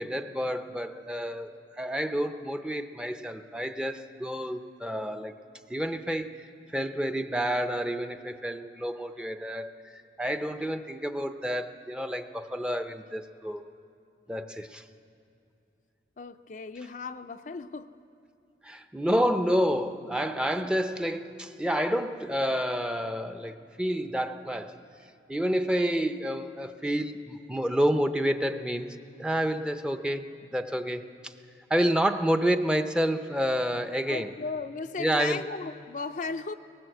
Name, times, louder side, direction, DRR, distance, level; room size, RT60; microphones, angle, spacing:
voice 1, 0.0-5.3 5.7-13.6 14.3-14.8 18.6-24.8 25.3-31.3 31.7-34.3 35.0-35.4, equal, 5° right, 8 dB, 0.6 m, -29 dB
voice 2, 16.2-17.9 20.6-20.8 34.1-36.5, left 4 dB, 45° left, 8 dB, 0.5 m, -36 dB
19.5 x 17.5 x 7.9 m, 2.5 s
head